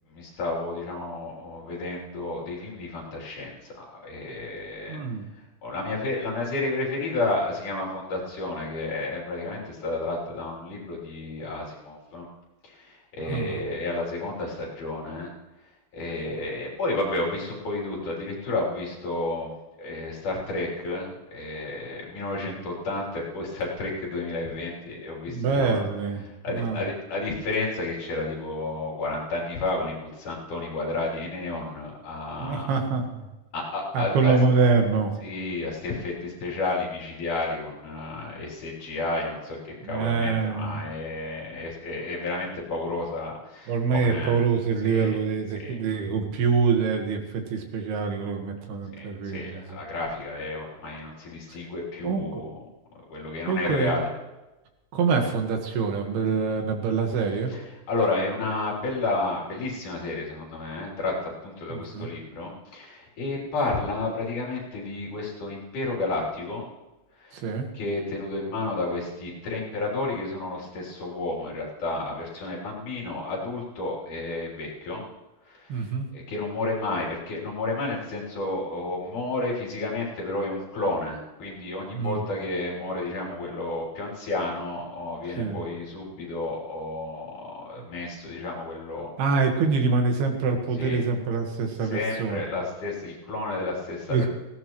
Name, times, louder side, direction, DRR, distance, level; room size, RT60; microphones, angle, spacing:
voice 1, 0.1-5.0 5.6-12.3 12.6-15.3 15.9-19.5 19.8-25.8 26.4-32.7 33.5-34.4 35.2-44.4 44.8-45.1 45.6-45.7 49.0-52.5 53.1-54.1 57.5-57.6 57.9-66.6 67.2-67.4 67.7-75.0 75.5-89.1 90.8-91.0 91.9-94.3, left 2 dB, 55° left, -3 dB, 4.8 m, -31 dB
voice 2, 4.9-5.3 13.2-13.6 25.3-26.8 32.4-33.3 33.9-35.1 39.8-40.8 43.7-49.8 51.5-51.6 52.0-52.4 53.5-54.0 54.9-57.5 61.7-62.1 67.3-67.7 75.7-76.1 81.9-82.3 85.4-85.7 89.2-92.4 94.1-94.3, right 5 dB, 85° right, 4 dB, 3.6 m, -25 dB
19.0 x 16.5 x 3.1 m, 1.0 s
omnidirectional pair, 4.4 m